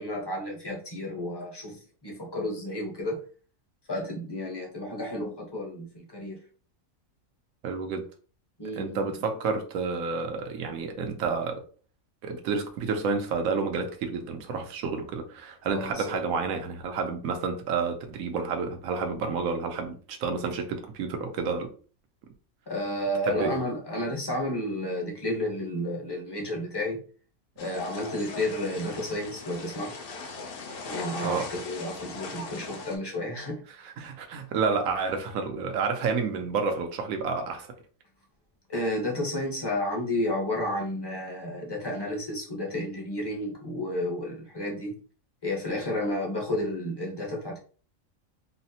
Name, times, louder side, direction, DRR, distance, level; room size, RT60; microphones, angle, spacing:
voice 1, 0.0-3.2 3.9-6.4 8.6-9.1 15.7-16.2 22.7-27.0 27.6-29.9 30.8-33.6 38.7-44.9 45.4-47.6, left 1 dB, 20° left, 0.8 m, -31 dB
voice 2, 7.6-8.0 8.7-11.6 12.2-21.7 23.2-23.6 31.2-31.5 34.0-37.7, right 4 dB, 80° right, 1.1 m, -30 dB
sound 1, 27.6-33.0, left 4 dB, 55° left, 0.7 m, -39 dB
3.9 x 2.0 x 2.7 m
omnidirectional pair, 1.4 m